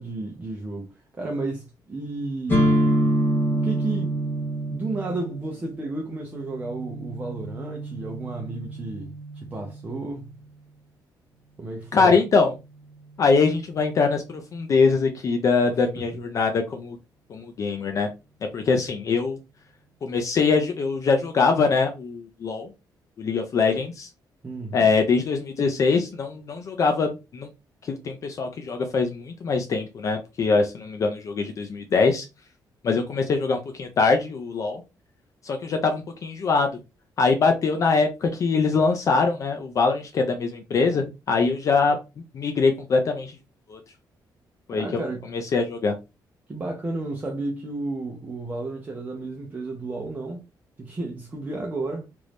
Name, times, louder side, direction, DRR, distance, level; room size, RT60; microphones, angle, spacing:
voice 1, 0.0-2.8 3.5-4.1 4.7-10.4 11.6-12.1 16.1-16.2 24.4-24.9 44.7-45.3 46.5-50.4 50.8-52.1, right 2 dB, 20° right, 0.6 m, -32 dB
sound 1, 2.5-10.3, right 1 dB, 25° left, 1.0 m, -27 dB
voice 2, 11.9-12.5 13.2-17.0 17.3-18.1 18.5-19.4 20.0-22.7 23.2-24.1 24.7-27.5 27.8-32.3 32.8-34.8 35.4-36.7 37.2-42.0 42.3-43.4 43.7-43.8 44.7-45.0 45.3-45.9, left 4 dB, 45° left, 0.4 m, -23 dB
3.0 x 2.6 x 3.3 m
cardioid pair, 165°, 8 cm